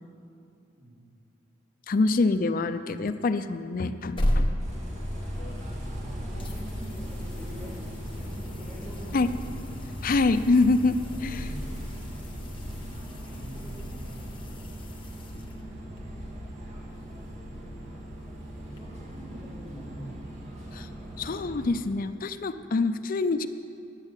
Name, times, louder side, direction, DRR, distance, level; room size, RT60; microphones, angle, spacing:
voice 1, 0.8-1.1 4.6-9.1 9.4-10.4 11.0-11.8 12.5-14.7 15.2-15.8 16.9-17.9 18.6-20.6 21.0-21.3, right 1 dB, 15° right, -14 dB, 3.5 m, -47 dB
voice 2, 1.9-4.5 9.1-9.3 10.0-11.5 20.7-20.9 21.2-23.5, left 3 dB, 45° left, 11 dB, 0.5 m, -25 dB
sound 1, 3.9-6.0 6.4-16.0 18.8-18.9, equal, 25° left, 1.1 m, -35 dB
sound 2, 4.6-21.8, equal, 40° right, 1.8 m, -38 dB
10.5 x 9.0 x 7.3 m, 2.8 s
head